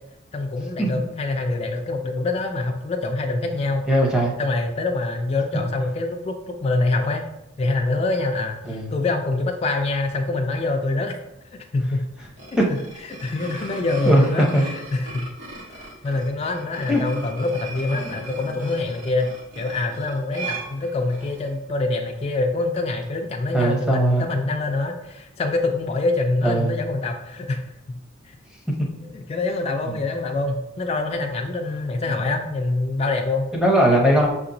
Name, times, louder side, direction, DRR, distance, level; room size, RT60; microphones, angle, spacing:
voice 1, 0.3-3.9 4.4-7.2 7.6-11.2 11.7-12.0 12.7-15.3 15.8-27.6 27.9-28.0 28.2-28.3 29.1-33.5, left 2 dB, 30° left, 2 dB, 0.3 m, -25 dB
voice 2, 3.9-4.3 8.6-8.9 12.6-12.7 14.1-14.3 14.5-14.6 16.9-17.0 23.5-24.2 26.4-26.7 29.9-30.0 32.1-32.2 33.5-34.3, right 1 dB, 5° right, -2 dB, 0.7 m, -19 dB
sound 1, 12.2-21.5, right 2 dB, 65° right, 1.0 m, -38 dB
5.9 x 2.8 x 2.6 m, 0.88 s
head